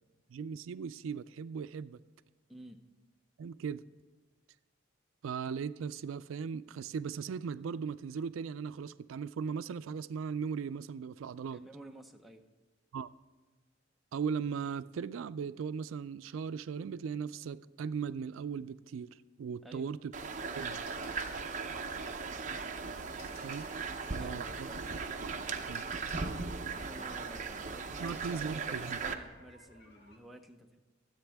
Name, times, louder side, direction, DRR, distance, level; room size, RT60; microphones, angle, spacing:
voice 1, 0.3-2.0 3.4-3.8 5.2-11.6 12.9-13.1 14.1-20.1 20.5-20.8 23.4-23.7 24.1-24.7 25.7-25.9 28.0-29.0, right 6 dB, 90° right, 0.3 m, -38 dB
voice 2, 11.5-12.4 19.6-19.9 23.1-23.6 24.2-24.8 26.7-30.8, right 1 dB, ahead, 0.6 m, -51 dB
sound 1, 20.1-23.8 25.2-25.3 25.7-28.7, left 2 dB, 85° left, 3.5 m, -58 dB
sound 2, 20.1-29.1, right 4 dB, 40° right, 0.7 m, -38 dB
sound 3, 22.3-30.2, left 1 dB, 55° left, 1.6 m, -59 dB
24.0 x 8.1 x 3.5 m
head